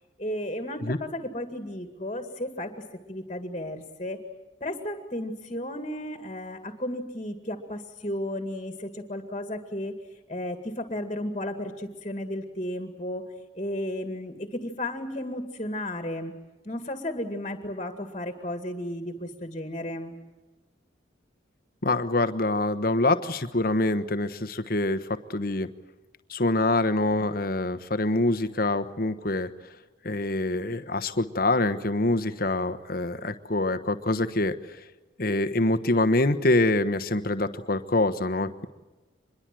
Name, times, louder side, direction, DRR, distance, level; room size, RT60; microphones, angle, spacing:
voice 1, 0.2-2.7 3.1-4.2 4.6-9.9 10.3-13.3 13.5-16.3 16.6-20.2, left 1 dB, 30° left, 6 dB, 2.1 m, -34 dB
voice 2, 21.8-25.7 26.3-29.5 30.0-34.8 35.2-38.7, left 2 dB, 50° left, 10 dB, 1.2 m, -25 dB
25.5 x 22.0 x 7.7 m, 1.1 s
head